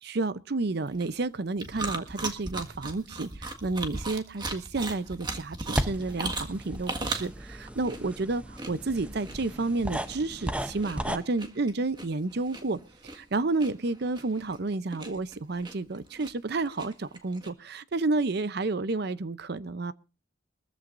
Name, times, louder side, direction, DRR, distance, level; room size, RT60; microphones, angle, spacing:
voice 1, 0.0-19.9, right 3 dB, 55° right, 0.6 m, -31 dB
sound 1, 0.7-17.5, right 2 dB, 25° right, 1.7 m, -38 dB
sound 2, 5.6-11.2, right 1 dB, 5° right, 0.7 m, -36 dB
23.0 x 14.5 x 2.6 m
head